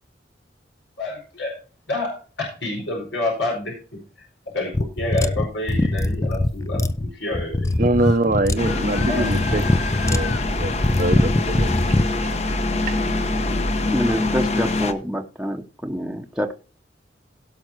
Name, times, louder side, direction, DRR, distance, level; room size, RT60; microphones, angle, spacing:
voice 1, 1.0-1.5 1.9-4.0 4.5-7.7 9.1-9.3, left 2 dB, 90° left, 4.7 m, -28 dB
sound 1, 4.7-12.1, left 1 dB, 15° left, 0.5 m, -22 dB
voice 2, 7.8-9.6 10.1-12.4 12.9-13.0, right 2 dB, 45° right, 0.7 m, -24 dB
sound 2, 8.0-8.2 8.6-10.4, left 3 dB, 65° left, 2.5 m, -34 dB
sound 3, 8.6-14.9, left 2 dB, 35° left, 1.0 m, -24 dB
voice 3, 13.9-16.5, equal, 5° right, 0.9 m, -26 dB
17.0 x 5.8 x 4.5 m
head